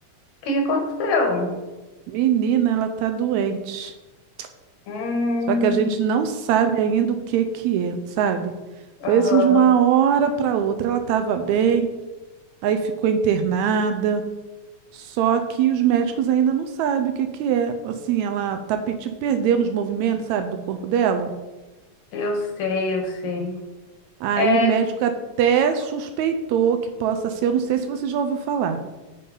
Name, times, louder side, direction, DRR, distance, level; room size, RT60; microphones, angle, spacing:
voice 1, 0.4-1.5 4.9-5.8 9.0-9.7 22.1-23.6 24.3-24.8, left 3 dB, 70° left, 3 dB, 2.4 m, -23 dB
voice 2, 2.1-3.9 5.5-8.5 9.1-11.9 12.6-14.2 14.9-21.3 24.2-25.1 25.4-28.8, right 8 dB, 80° right, 7 dB, 1.8 m, -22 dB
9.1 x 5.4 x 3.9 m, 1.1 s
omnidirectional pair, 3.5 m